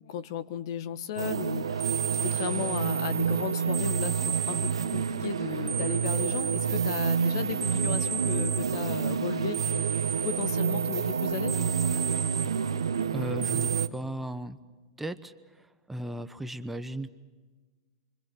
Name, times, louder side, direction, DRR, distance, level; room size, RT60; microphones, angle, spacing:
voice 1, 0.0-11.7, left 10 dB, 60° left, 12 dB, 1.3 m, -35 dB
sound 1, 1.2-13.9, right 7 dB, 85° right, 1.1 m, -28 dB
voice 2, 13.1-14.6 15.0-15.3 15.9-17.1, right 1 dB, 5° right, 10 dB, 1.0 m, -36 dB
28.5 x 24.5 x 6.2 m, 1.3 s
hypercardioid pair, 110°, 3 cm